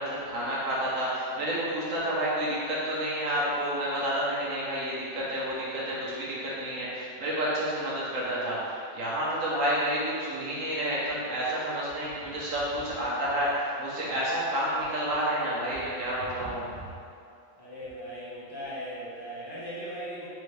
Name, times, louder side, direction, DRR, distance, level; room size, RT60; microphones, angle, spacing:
voice 1, 0.0-16.7, equal, 80° right, -7 dB, 1.3 m, -30 dB
voice 2, 17.6-20.3, equal, 20° left, -9 dB, 0.9 m, -38 dB
4.0 x 3.4 x 3.2 m, 2.4 s
omnidirectional pair, 1.3 m